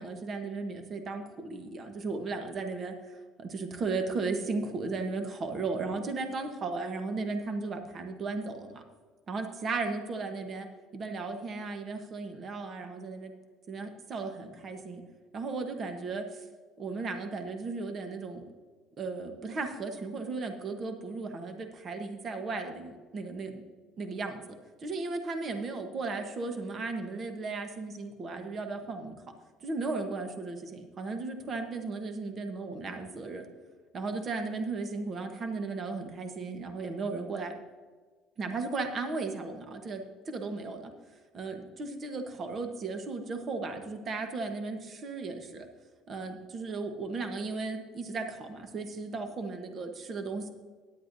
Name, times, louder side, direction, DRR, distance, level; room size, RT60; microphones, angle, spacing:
voice 1, 0.0-8.8 9.3-10.7 10.9-13.3 13.7-15.0 15.3-16.4 16.8-18.4 19.0-23.6 24.0-24.4 24.8-29.1 29.6-33.5 33.9-37.5 38.4-40.9 41.3-45.7 46.1-50.5, right 3 dB, 30° right, 6 dB, 1.1 m, -35 dB
16.5 x 10.5 x 2.7 m, 1.4 s
cardioid pair, 150°, 0 cm